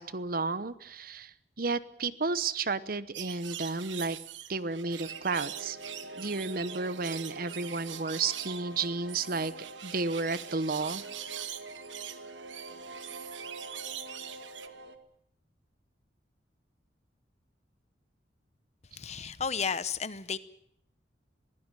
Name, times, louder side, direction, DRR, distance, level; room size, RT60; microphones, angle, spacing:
voice 1, 0.0-4.2 4.5-5.8 6.2-11.0, right 3 dB, 50° right, 16 dB, 0.9 m, -32 dB
sound 1, 3.1-14.7, right 11 dB, 90° right, 1.4 m, -43 dB
sound 2, 4.8-15.0, right 2 dB, 70° right, 1.9 m, -46 dB
voice 2, 18.9-20.4, left 6 dB, 35° left, 15 dB, 0.9 m, -33 dB
23.0 x 16.5 x 9.1 m, 0.72 s
head